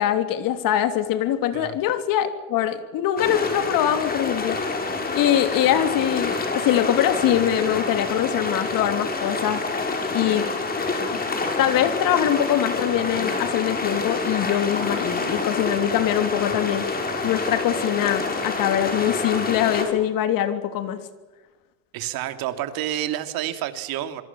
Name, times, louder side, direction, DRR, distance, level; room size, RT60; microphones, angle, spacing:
voice 1, 0.0-4.6 5.1-9.6 10.1-10.5 11.6-16.9 17.2-21.0, left 11 dB, 50° left, 9 dB, 3.2 m, -23 dB
sound 1, 3.2-19.9, left 3 dB, 20° left, 6.5 m, -27 dB
voice 2, 21.9-24.2, right 12 dB, 60° right, 9 dB, 2.9 m, -29 dB
26.5 x 24.0 x 7.3 m, 1.2 s
supercardioid pair, 125°, 41 cm